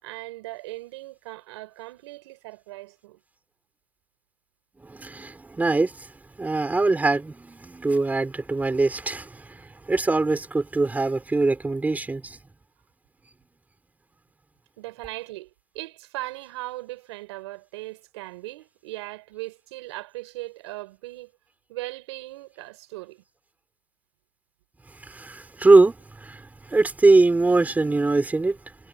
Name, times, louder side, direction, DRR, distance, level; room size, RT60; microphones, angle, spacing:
voice 1, 0.0-3.2 14.8-21.3 21.7-23.2, right 20 dB, 85° right, 6.8 m, -38 dB
voice 2, 4.8-6.1 6.4-12.4 25.1-28.6, right 3 dB, 10° right, 4.8 m, -22 dB
supercardioid pair, 120°, 14 cm